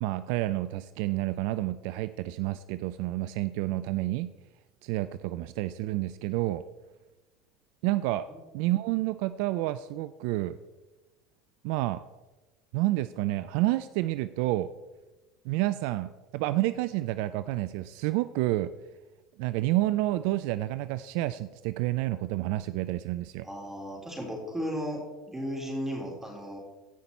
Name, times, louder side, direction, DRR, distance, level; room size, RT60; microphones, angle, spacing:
voice 1, 0.0-4.3 4.8-6.6 7.8-8.3 8.5-10.6 11.6-12.0 12.7-14.7 15.4-18.7 19.4-23.5, right 16 dB, 65° right, 14 dB, 0.3 m, -29 dB
voice 2, 23.4-26.6, equal, 10° right, -1 dB, 3.9 m, -35 dB
15.5 x 5.8 x 4.3 m, 1.1 s
hypercardioid pair, 80°, 3 cm